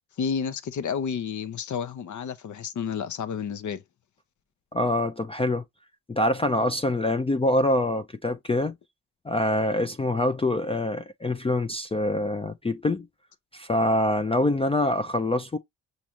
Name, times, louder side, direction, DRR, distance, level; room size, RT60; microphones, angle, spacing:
voice 1, 0.2-3.8, left 6 dB, 50° left, 0.7 m, -30 dB
voice 2, 4.7-5.6 6.1-8.7 9.2-13.1 13.5-15.6, left 1 dB, 15° left, 0.4 m, -25 dB
5.9 x 2.6 x 2.8 m
supercardioid pair, 55°, 39 cm